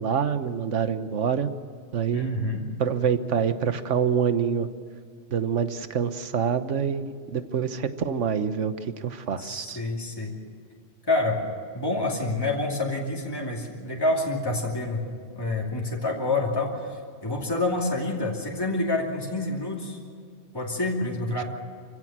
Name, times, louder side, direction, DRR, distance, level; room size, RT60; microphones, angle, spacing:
voice 1, 0.0-1.5 1.9-2.3 2.8-4.7 5.3-9.8, right 7 dB, 80° right, 11 dB, 1.4 m, -26 dB
voice 2, 2.1-2.6 9.4-10.4 11.1-11.4 11.7-15.0 15.3-20.0 20.5-21.4, left 2 dB, 20° left, -2 dB, 2.7 m, -27 dB
26.5 x 16.0 x 7.4 m, 2.2 s
omnidirectional pair, 1.2 m